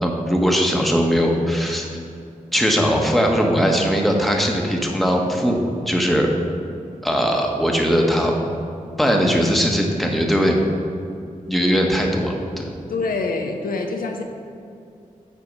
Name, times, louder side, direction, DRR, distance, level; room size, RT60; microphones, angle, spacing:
voice 1, 0.0-1.9 2.5-6.3 7.0-8.4 9.0-10.6 11.5-12.6, equal, ahead, 0 dB, 1.3 m, -19 dB
voice 2, 12.9-14.2, left 3 dB, 85° left, 3 dB, 0.7 m, -25 dB
7.9 x 4.6 x 5.5 m, 2.5 s
cardioid pair, 40°, 15 cm